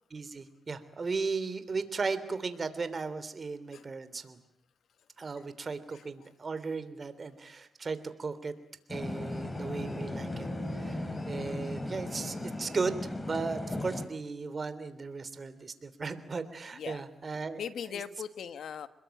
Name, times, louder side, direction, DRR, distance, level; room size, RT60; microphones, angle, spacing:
voice 1, 0.1-4.4 5.2-8.5 8.9-10.5 10.8-13.0 13.3-17.6, right 4 dB, 45° right, 12 dB, 3.2 m, -36 dB
sound 1, 8.9-14.1, left 1 dB, 25° left, 3.8 m, -36 dB
voice 2, 17.6-18.9, left 8 dB, 85° left, 12 dB, 1.5 m, -39 dB
27.0 x 21.5 x 9.2 m, 0.75 s
cardioid pair, 70°, 0 cm